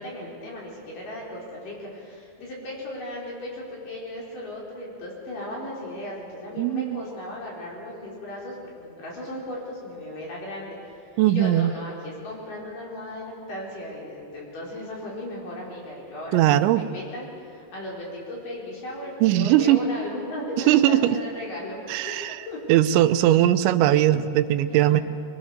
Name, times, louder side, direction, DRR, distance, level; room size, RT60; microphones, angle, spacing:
voice 1, 0.0-22.6 24.7-25.0, left 1 dB, 45° left, -4 dB, 5.9 m, -36 dB
voice 2, 6.6-7.0 11.2-11.7 16.3-16.8 19.2-19.8 20.7-21.2 21.9-22.4 22.7-25.0, right 13 dB, 90° right, 10 dB, 3.1 m, -19 dB
23.0 x 22.0 x 6.7 m, 2.6 s
omnidirectional pair, 5.2 m